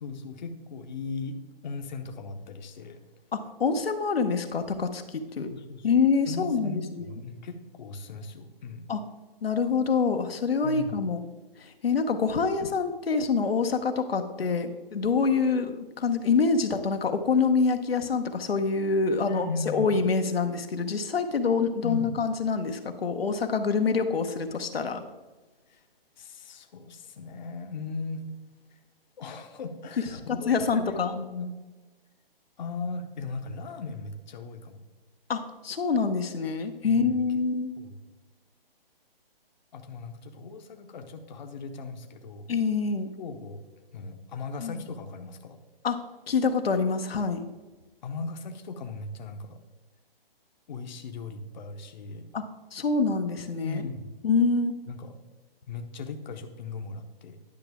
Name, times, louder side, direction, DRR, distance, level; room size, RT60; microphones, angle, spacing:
voice 1, 0.0-1.4 1.6-3.0 5.4-5.9 6.2-8.9 10.6-11.0 19.3-20.0 21.8-22.2 25.7-25.8 26.2-28.3 28.7-28.8 29.2-31.5 32.6-34.8 36.8-37.2 37.8-38.0 39.7-42.5 43.2-43.6 43.9-45.6 48.0-49.6 50.7-52.3 53.6-54.1 54.9-55.1 55.7-57.4, left 4 dB, 50° left, 6 dB, 0.9 m, -38 dB
voice 2, 3.3-5.5 5.8-7.1 8.9-9.0 9.4-11.2 11.6-25.0 30.3-31.2 35.3-37.7 42.5-43.1 44.6-44.8 45.8-46.0 46.3-47.5 52.3-52.4 52.7-53.8 54.2-54.7, left 5 dB, 80° left, 6 dB, 0.9 m, -26 dB
10.5 x 5.8 x 3.5 m, 1.2 s
hypercardioid pair, 145°, 30 cm